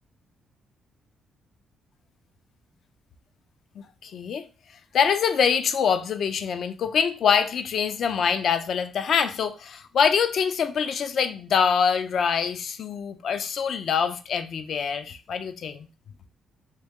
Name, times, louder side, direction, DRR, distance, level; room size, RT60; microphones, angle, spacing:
voice 1, 3.8-4.5 4.9-15.9, left 7 dB, 60° left, 0.4 m, -24 dB
2.8 x 2.7 x 3.5 m
cardioid pair, 90°, 0 cm